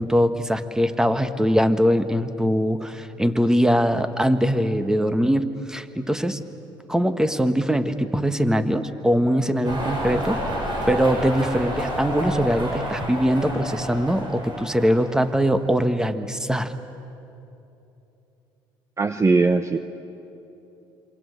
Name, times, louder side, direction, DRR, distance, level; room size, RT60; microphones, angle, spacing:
voice 1, 0.0-6.4 6.9-10.4 10.9-16.7, equal, 5° right, 10 dB, 1.5 m, -22 dB
sound 1, 9.6-15.8, equal, 45° right, 7.8 m, -30 dB
voice 2, 19.0-19.8, right 3 dB, 25° right, 10 dB, 0.9 m, -19 dB
27.5 x 24.5 x 8.2 m, 2.9 s
supercardioid pair, 80°, 11 cm